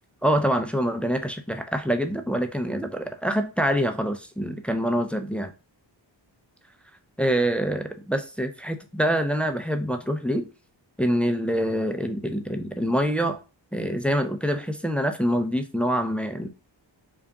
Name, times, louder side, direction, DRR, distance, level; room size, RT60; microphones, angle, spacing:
voice 1, 0.2-5.5 7.2-10.5 11.0-13.4 13.7-16.5, equal, 5° left, 0.4 m, -25 dB
3.8 x 2.4 x 3.4 m
wide cardioid pair, 65°, 45 cm